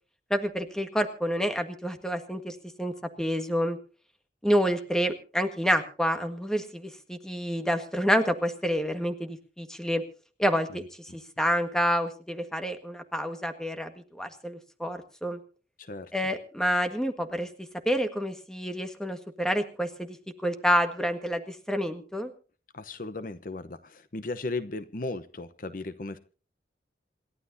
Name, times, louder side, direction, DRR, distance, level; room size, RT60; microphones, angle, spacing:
voice 1, 0.3-3.8 4.4-10.0 10.4-10.8 11.1-15.4 16.1-17.5 17.8-20.1 20.4-22.3, equal, 5° left, 7 dB, 1.6 m, -28 dB
voice 2, 15.8-16.1 22.7-26.2, left 2 dB, 50° left, 12 dB, 0.9 m, -36 dB
27.5 x 12.0 x 2.7 m, 0.38 s
head